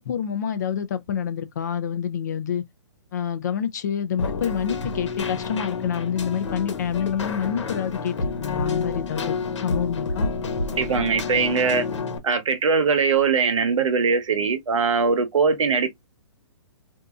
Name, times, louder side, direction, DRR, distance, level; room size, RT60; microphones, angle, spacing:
voice 1, 0.0-2.6 3.1-10.3, left 8 dB, 35° left, 0.4 m, -27 dB
Keyboard (musical), 4.2-12.2, left 4 dB, 70° left, 1.1 m, -29 dB
voice 2, 10.7-11.8 12.2-15.9, right 5 dB, 85° right, 0.9 m, -21 dB
4.0 x 2.6 x 2.3 m
hypercardioid pair, 170°, 16 cm